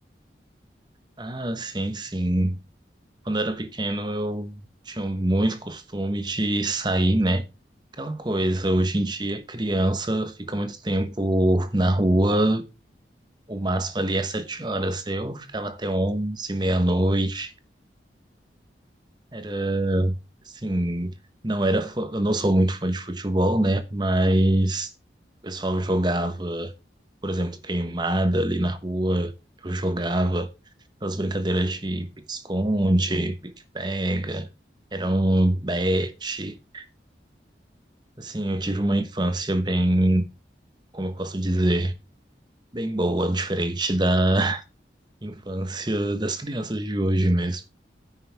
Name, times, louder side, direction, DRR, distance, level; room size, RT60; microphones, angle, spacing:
voice 1, 1.2-2.6 3.2-4.6 4.9-7.5 8.0-12.6 13.5-17.5 19.3-20.2 20.5-21.1 21.4-24.9 25.4-26.7 27.2-29.3 29.6-30.5 31.0-34.5 34.9-36.8 38.2-40.3 40.9-41.9 42.7-44.6 45.2-47.6, right 1 dB, 25° right, 1.1 m, -24 dB
10.5 x 9.7 x 3.5 m
head